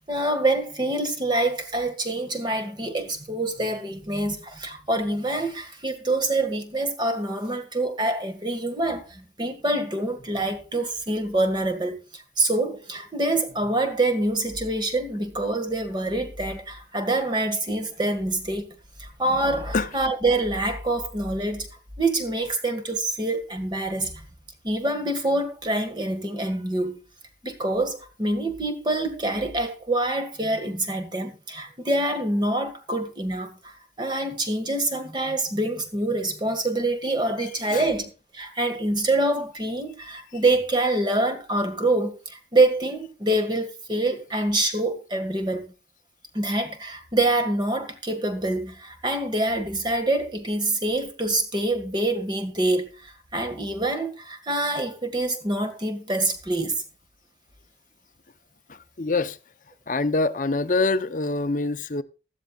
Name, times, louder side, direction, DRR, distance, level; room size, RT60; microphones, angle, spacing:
voice 1, 0.1-18.7 19.0-21.7 22.0-24.1 24.6-27.0 27.4-45.6 46.3-56.8, right 2 dB, 25° right, 1.8 m, -26 dB
voice 2, 58.7-59.4 59.9-62.0, left 3 dB, 45° left, 0.7 m, -25 dB
16.0 x 13.0 x 2.4 m
head